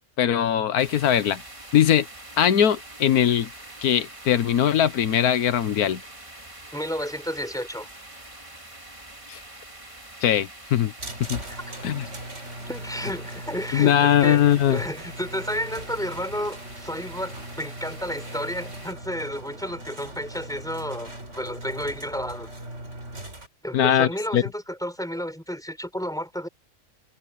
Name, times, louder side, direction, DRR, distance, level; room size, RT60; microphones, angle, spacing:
voice 1, 0.2-1.4 1.7-2.1 2.4-3.5 3.8-6.0 9.3-9.4 10.2-10.9 11.3-11.4 11.8-12.0 13.7-14.8 23.7-24.4, left 10 dB, 90° left, 1.5 m, -20 dB
sound 1, 0.8-18.9, right 1 dB, 20° right, 2.7 m, -45 dB
voice 2, 6.7-7.9 11.5-11.7 12.7-22.5 23.6-26.5, equal, ahead, 5.0 m, -32 dB
sound 2, 11.0-23.5, right 1 dB, 50° right, 4.9 m, -39 dB
omnidirectional pair, 1.5 m